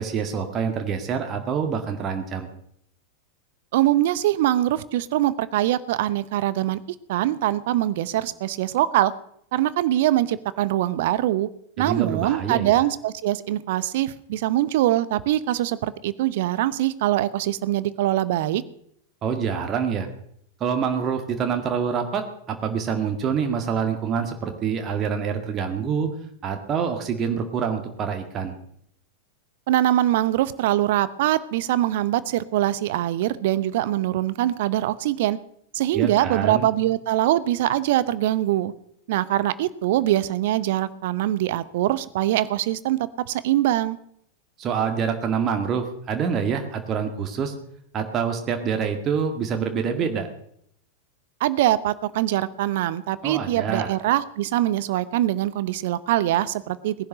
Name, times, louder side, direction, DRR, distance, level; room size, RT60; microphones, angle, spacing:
voice 1, 0.0-2.5 11.8-12.8 19.2-20.1 20.6-26.1 26.4-28.5 35.9-36.7 44.6-47.5 47.9-50.3 53.2-54.0, right 7 dB, 30° right, 5 dB, 1.9 m, -26 dB
voice 2, 3.7-6.8 7.1-9.1 9.5-11.5 11.8-18.6 29.7-35.4 35.7-38.7 39.1-44.0 51.4-56.9, right 14 dB, 55° right, 17 dB, 0.8 m, -23 dB
19.0 x 10.5 x 6.5 m, 0.69 s
figure-of-eight pair, 90°, 0 cm